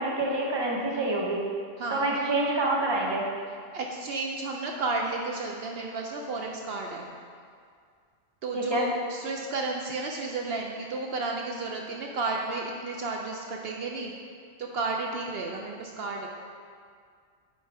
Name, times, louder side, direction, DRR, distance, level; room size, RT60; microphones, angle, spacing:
voice 1, 0.0-1.4 1.9-3.3 8.5-8.9, right 2 dB, 25° right, -2 dB, 1.0 m, -27 dB
voice 2, 1.8-2.1 3.7-7.1 8.4-14.1 14.6-16.3, right 3 dB, 70° right, 1 dB, 0.8 m, -32 dB
9.2 x 4.2 x 4.7 m, 2.1 s
omnidirectional pair, 1.1 m